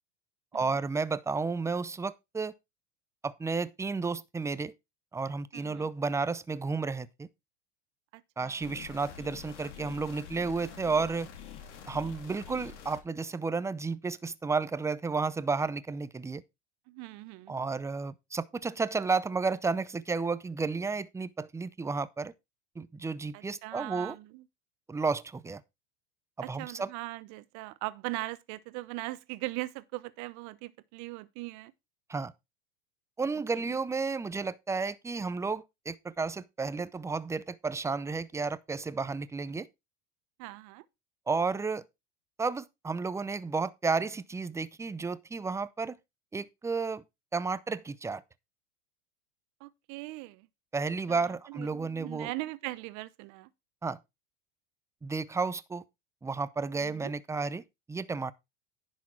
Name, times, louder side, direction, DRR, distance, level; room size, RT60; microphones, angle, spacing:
voice 1, 0.5-2.5 3.2-4.7 5.1-7.3 8.4-11.3 11.9-16.4 17.5-22.3 22.8-24.2 24.9-25.6 26.5-26.9 32.1-32.3 33.2-39.7 41.3-41.8 42.4-46.0 46.3-47.0 47.3-48.2 50.7-52.3 53.8-54.0 55.0-55.8 56.2-57.6 57.9-58.3, right 4 dB, 10° right, 0.5 m, -32 dB
voice 2, 5.5-5.9 8.1-8.7 16.9-17.7 23.3-24.4 26.4-31.7 33.5-33.7 40.4-40.8 49.6-50.5 51.1-53.5 56.7-57.1, right 20 dB, 55° right, 1.1 m, -40 dB
sound 1, 8.6-13.0, left 8 dB, 85° left, 2.5 m, -46 dB
10.5 x 6.2 x 4.5 m
supercardioid pair, 110°, 35 cm